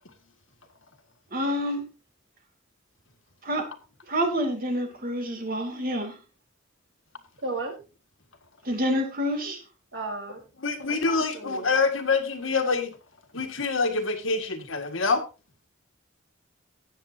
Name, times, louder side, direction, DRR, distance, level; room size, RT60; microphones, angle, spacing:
voice 1, 1.3-1.8 3.4-3.7 4.1-6.2 8.6-9.6, equal, 45° right, 2.7 m, -27 dB
voice 2, 7.4-7.7 9.9-10.4 10.9-11.7, right 3 dB, 70° right, 4.1 m, -34 dB
voice 3, 10.6-12.9 13.3-15.2, left 4 dB, 80° left, 1.8 m, -26 dB
19.0 x 7.7 x 2.8 m
head